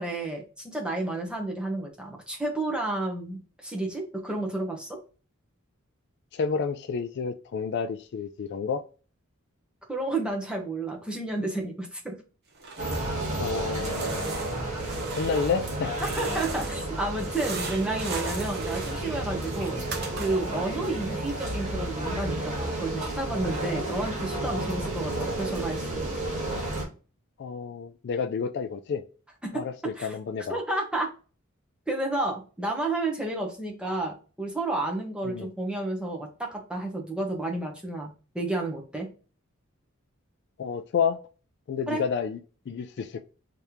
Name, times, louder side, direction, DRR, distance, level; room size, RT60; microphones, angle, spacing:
voice 1, 0.0-5.0 9.9-12.2 16.0-19.8 20.2-26.0 29.4-29.6 29.9-30.1 30.5-31.1 31.9-39.1 41.9-42.0, right 2 dB, 5° right, 0.9 m, -31 dB
voice 2, 6.3-8.8 13.4-14.2 15.1-16.0 20.8-20.9 23.8-23.9 27.4-29.0 29.5-30.6 35.3-35.5 40.6-41.2 41.7-42.4 42.7-43.2, left 6 dB, 55° left, 0.3 m, -30 dB
sound 1, 12.5-13.4 13.7-16.9 17.2-20.6, right 4 dB, 50° right, 0.9 m, -38 dB
sound 2, 12.8-26.9, right 1 dB, 35° right, 1.5 m, -32 dB
3.3 x 2.9 x 3.5 m
head